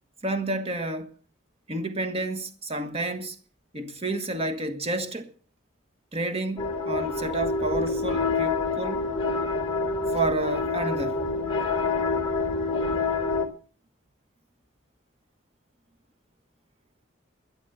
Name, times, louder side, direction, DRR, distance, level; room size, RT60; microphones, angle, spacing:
voice 1, 0.2-1.1 1.7-3.3 3.7-5.3 6.1-9.0 10.1-11.2, right 2 dB, 30° right, 1.4 m, -30 dB
sound 1, 6.6-13.5, left 3 dB, 25° left, 3.6 m, -27 dB
12.5 x 11.0 x 7.0 m
head